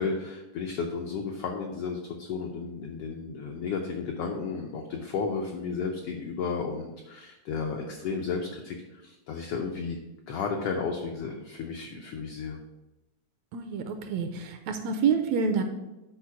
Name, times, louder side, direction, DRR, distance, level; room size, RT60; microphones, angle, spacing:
voice 1, 0.0-10.0 10.3-12.6, left 5 dB, 85° left, 3 dB, 1.3 m, -33 dB
voice 2, 13.5-15.6, right 6 dB, 75° right, 6 dB, 1.7 m, -27 dB
9.2 x 4.1 x 5.8 m, 1.0 s
omnidirectional pair, 3.5 m